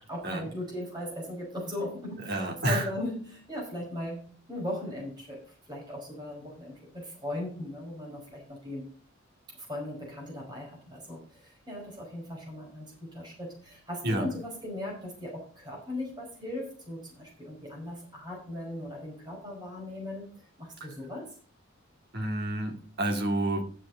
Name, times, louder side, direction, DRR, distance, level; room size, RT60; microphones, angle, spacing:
voice 1, 0.1-8.9 9.5-21.3, left 1 dB, 20° right, 5.3 m, -38 dB
voice 2, 2.3-2.9 14.0-14.3 20.8-20.9 22.1-23.6, right 1 dB, 55° right, 2.3 m, -29 dB
11.5 x 7.6 x 5.5 m
head